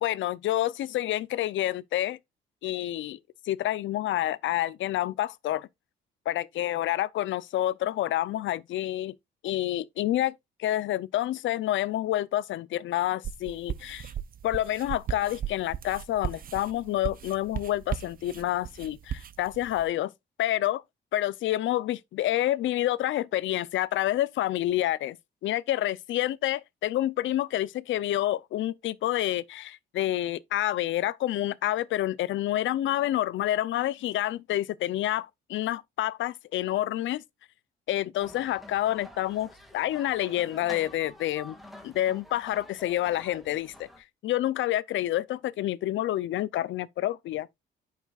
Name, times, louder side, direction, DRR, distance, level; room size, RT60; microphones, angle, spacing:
voice 1, 0.0-2.2 2.6-3.2 3.5-5.7 6.3-9.1 9.4-14.1 14.4-20.1 20.4-20.8 21.1-25.2 25.4-37.2 37.9-41.6 41.8-43.9 44.2-47.5, left 13 dB, 75° left, 0.6 m, -28 dB
sound 1, 13.2-19.9, right 9 dB, 45° right, 0.6 m, -36 dB
sound 2, 38.2-44.0, left 1 dB, ahead, 2.0 m, -48 dB
8.8 x 6.5 x 2.4 m
cardioid pair, 90°, 20 cm